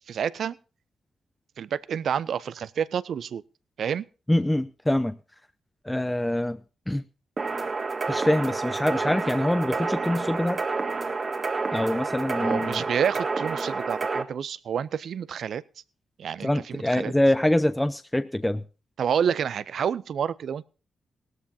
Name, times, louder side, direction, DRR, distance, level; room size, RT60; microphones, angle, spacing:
voice 1, 0.1-0.6 1.6-3.4 3.8-4.0 12.4-15.6 16.2-17.1 19.0-20.6, right 8 dB, 70° right, 18 dB, 0.5 m, -29 dB
voice 2, 4.3-5.2 5.8-6.6 6.9-7.0 8.1-10.6 11.7-12.8 16.4-18.6, left 1 dB, 10° left, 10 dB, 0.7 m, -25 dB
sound 1, 7.4-14.2, right 4 dB, 45° right, 1.5 m, -29 dB
18.0 x 13.0 x 2.8 m, 0.34 s
supercardioid pair, 45°, 0 cm